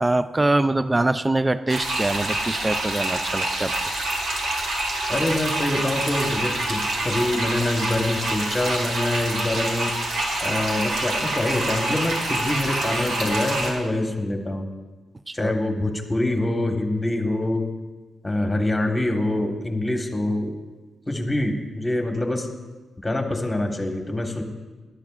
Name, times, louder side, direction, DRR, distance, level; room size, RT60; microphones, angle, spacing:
voice 1, 0.0-3.7 15.3-15.5, right 2 dB, 15° right, 12 dB, 0.4 m, -23 dB
sound 1, 1.7-13.7, right 2 dB, 85° right, 2.3 m, -26 dB
voice 2, 5.1-9.9 10.4-14.7 15.3-17.7 18.2-20.5 21.1-22.5 23.0-24.4, left 1 dB, 15° left, 3 dB, 1.4 m, -25 dB
18.5 x 11.5 x 2.5 m, 1.2 s
wide cardioid pair, 125°, 0 cm